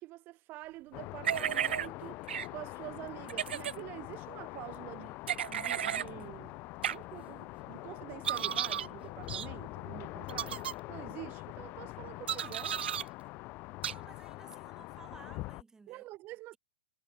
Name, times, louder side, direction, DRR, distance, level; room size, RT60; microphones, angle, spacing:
voice 1, 0.0-2.2 2.5-5.2 5.5-6.6 6.9-10.6 10.9-12.8 15.9-16.6, right 18 dB, 30° right, 2.0 m, -47 dB
sound 1, 0.9-15.6, left 22 dB, 35° left, 0.7 m, -44 dB
sound 2, 1.2-1.9 2.3-2.5 3.3-3.8 5.3-6.1 6.8-7.0 8.2-8.9 9.3-9.5 10.3-10.7 12.3-13.0 13.8-13.9, right 9 dB, 65° right, 0.4 m, -33 dB
voice 2, 13.9-16.1, right 4 dB, 10° right, 3.7 m, -55 dB
figure-of-eight pair, 115°, 6 cm